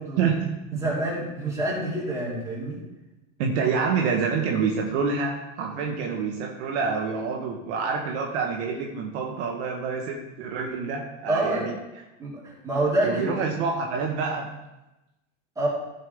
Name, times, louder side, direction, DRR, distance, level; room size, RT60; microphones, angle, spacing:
voice 1, 0.2-0.8 3.4-11.7 13.0-14.5, right 5 dB, 65° right, 1 dB, 1.4 m, -27 dB
voice 2, 0.7-2.8 11.3-11.7 12.2-13.4 15.6-15.7, right 1 dB, 10° right, -8 dB, 4.0 m, -27 dB
15.5 x 7.0 x 3.6 m, 1.0 s
supercardioid pair, 170°, 36 cm